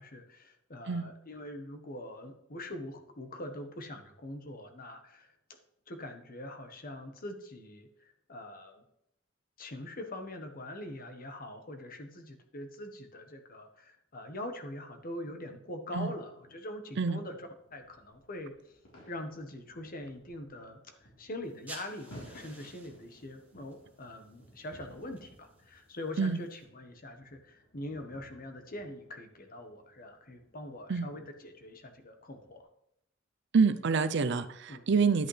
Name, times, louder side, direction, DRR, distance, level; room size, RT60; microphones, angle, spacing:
voice 1, 0.0-5.3 5.9-8.8 9.6-18.5 19.1-32.6 34.7-34.8, left 1 dB, 45° left, 5 dB, 1.3 m, -43 dB
sound 1, 17.5-32.6, left 1 dB, 80° left, 3.8 m, -58 dB
sound 2, 21.4-26.6, right 2 dB, 10° right, 3.4 m, -54 dB
voice 2, 33.5-35.3, right 5 dB, 60° right, 12 dB, 0.6 m, -27 dB
11.0 x 8.7 x 3.3 m, 0.76 s
head